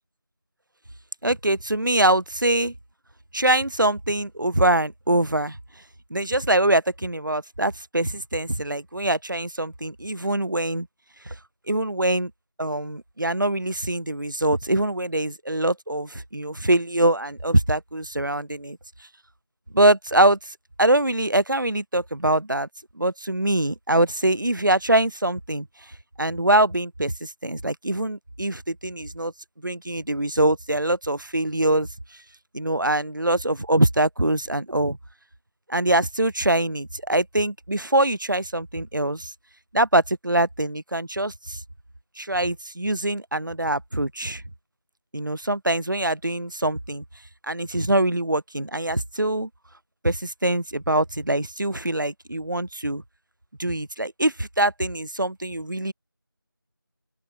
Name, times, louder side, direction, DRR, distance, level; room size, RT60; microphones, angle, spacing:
voice 1, 1.2-2.7 3.3-5.6 6.1-10.9 11.2-11.3 11.7-12.3 12.6-18.8 19.7-22.7 23.0-25.7 26.2-29.3 29.6-31.9 32.5-35.0 35.7-39.3 39.7-41.6 42.2-44.4 45.1-47.0 47.4-49.5 50.0-53.0 53.6-55.9, right 1 dB, 60° right, 0.9 m, -23 dB
open air
figure-of-eight pair, 180°, 12 cm